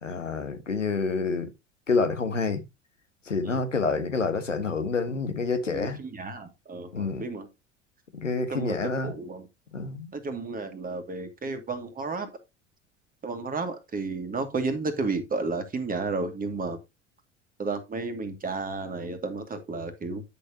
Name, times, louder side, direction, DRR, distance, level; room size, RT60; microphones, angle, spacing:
voice 1, 0.0-1.5 1.9-2.6 3.2-6.0 6.9-7.2 8.1-9.1 9.7-10.1, left 4 dB, 85° left, 1.3 m, -28 dB
voice 2, 5.7-7.5 8.5-8.8 9.0-9.5 10.1-12.3 13.2-16.8 17.6-20.2, right 3 dB, 25° right, 2.1 m, -32 dB
10.5 x 6.6 x 2.8 m
figure-of-eight pair, 70°, 36 cm